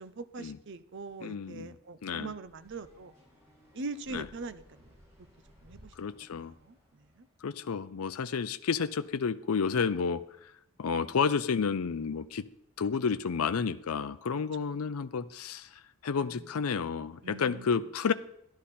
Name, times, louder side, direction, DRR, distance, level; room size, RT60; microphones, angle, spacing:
voice 1, 0.0-3.1 3.7-4.8 5.6-6.1 6.6-6.8 7.2-7.3 14.6-14.7 16.2-16.4 17.2-17.8, right 3 dB, 55° right, 0.6 m, -42 dB
voice 2, 1.2-1.8 2.0-2.3 4.1-4.3 6.0-6.5 7.4-10.5 10.8-12.5 12.8-18.1, left 5 dB, 75° left, 0.5 m, -31 dB
sound 1, 2.4-7.3, equal, 15° right, 5.1 m, -59 dB
11.5 x 11.5 x 4.3 m
head